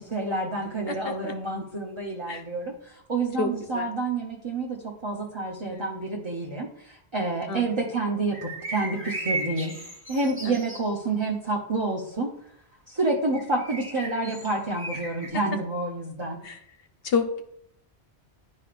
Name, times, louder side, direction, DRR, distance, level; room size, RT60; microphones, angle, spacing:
voice 1, 0.0-9.8 10.1-12.3 12.9-16.4, right 2 dB, 30° right, -2 dB, 1.0 m, -29 dB
voice 2, 0.9-1.3 2.3-2.4 3.4-3.9 5.6-6.0 7.5-7.7 10.4-10.6 16.4-16.6 17.0-17.4, left 4 dB, 65° left, 6 dB, 1.1 m, -29 dB
sound 1, 8.3-10.9 13.3-15.3, right 2 dB, 10° right, 1.4 m, -35 dB
12.0 x 4.2 x 2.5 m, 0.68 s
omnidirectional pair, 1.1 m